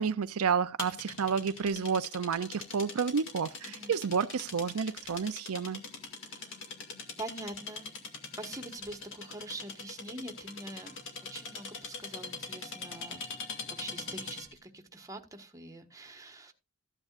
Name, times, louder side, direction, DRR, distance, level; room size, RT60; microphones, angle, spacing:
voice 1, 0.0-5.8, right 6 dB, 70° right, 0.5 m, -30 dB
sound 1, 0.8-14.6, left 4 dB, 60° left, 2.5 m, -43 dB
voice 2, 1.6-2.0 3.7-4.0 6.3-6.7 7.2-8.1 8.4-11.0 11.3-13.2 13.8-16.5, right 2 dB, 15° right, 1.4 m, -44 dB
14.5 x 9.8 x 2.5 m
head